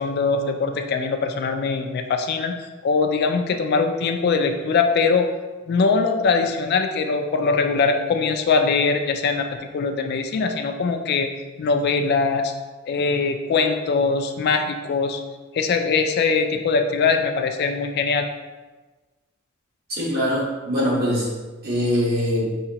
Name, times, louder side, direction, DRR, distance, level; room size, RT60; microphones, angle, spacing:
voice 1, 0.0-2.6 2.8-5.3 5.7-9.5 9.7-11.3 11.6-12.5 12.9-15.2 15.5-18.3, left 4 dB, 50° left, 6 dB, 0.3 m, -22 dB
voice 2, 19.9-21.3 21.6-22.5, equal, 50° right, -5 dB, 1.3 m, -22 dB
5.6 x 2.8 x 2.8 m, 1.3 s
head